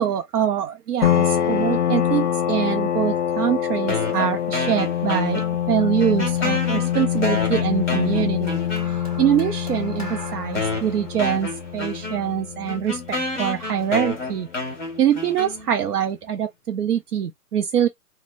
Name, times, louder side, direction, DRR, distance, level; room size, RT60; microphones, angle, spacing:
voice 1, 0.0-8.6 9.2-14.5 15.0-17.9, right 9 dB, 75° right, 0.6 m, -24 dB
sound 1, 1.0-14.3, left 9 dB, 50° left, 0.5 m, -25 dB
sound 2, 3.9-5.7 6.0-9.2 10.0-10.1 10.5-15.9, left 3 dB, 5° left, 1.0 m, -30 dB
sound 3, 8.5-12.9 13.8-14.1, equal, 25° right, 0.6 m, -41 dB
3.1 x 2.1 x 2.5 m
hypercardioid pair, 175°, 47 cm